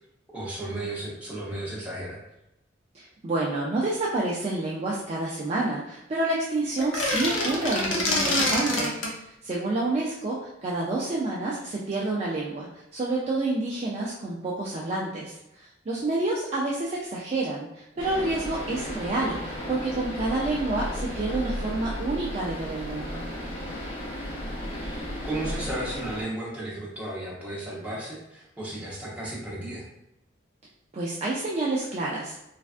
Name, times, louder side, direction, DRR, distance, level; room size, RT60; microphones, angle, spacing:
voice 1, 0.3-2.2 24.7-29.9, right 1 dB, 5° right, -6 dB, 0.8 m, -34 dB
voice 2, 2.9-8.9 9.2-23.2 30.9-32.4, right 2 dB, 30° right, -5 dB, 0.4 m, -29 dB
sound 1, 6.8-9.1, left 1 dB, 70° left, 0.7 m, -26 dB
sound 2, 18.0-26.2, equal, 25° left, 0.8 m, -34 dB
3.2 x 2.4 x 2.4 m, 0.87 s
head